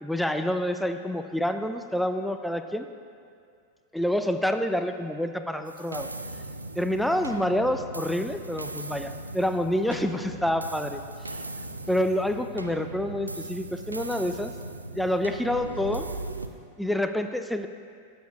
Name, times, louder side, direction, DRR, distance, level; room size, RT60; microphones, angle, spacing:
voice 1, 0.0-2.9 3.9-6.1 6.8-11.0 11.9-14.5 14.9-16.1 16.8-17.7, left 1 dB, ahead, 8 dB, 0.3 m, -27 dB
sound 1, 5.7-16.5, right 2 dB, 85° right, 0.4 m, -38 dB
16.0 x 7.0 x 2.4 m, 2.3 s
figure-of-eight pair, 90°, 0 cm